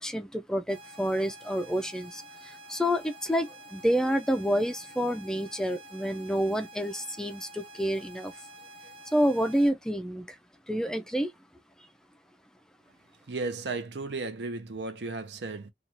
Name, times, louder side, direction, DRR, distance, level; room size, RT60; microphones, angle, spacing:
voice 1, 0.0-8.3 9.1-10.4 10.7-11.3, equal, 5° left, 0.3 m, -28 dB
sound 1, 0.7-9.7, right 1 dB, 30° right, 0.6 m, -49 dB
voice 2, 13.3-15.7, right 3 dB, 75° right, 0.6 m, -34 dB
2.5 x 2.3 x 2.9 m
head